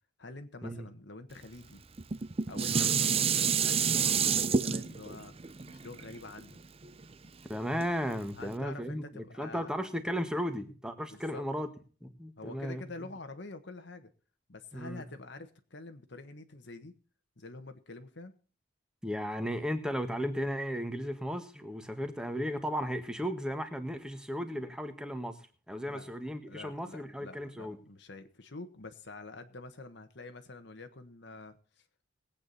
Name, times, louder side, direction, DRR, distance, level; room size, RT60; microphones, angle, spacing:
voice 1, 0.2-1.8 2.5-6.6 8.4-9.7 11.1-11.4 12.4-14.1 14.5-16.9 17.4-18.3 25.9-26.1 26.5-31.8, left 2 dB, 60° left, 7 dB, 1.4 m, -47 dB
Dishes pots and pans, 2.0-7.3 7.8-7.9, right 6 dB, 30° right, 0.6 m, -29 dB
voice 2, 7.5-11.7 12.0-12.8 14.7-15.0 19.0-25.4 25.7-27.8, equal, 5° right, 8 dB, 1.6 m, -35 dB
20.5 x 8.8 x 4.2 m, 0.38 s
head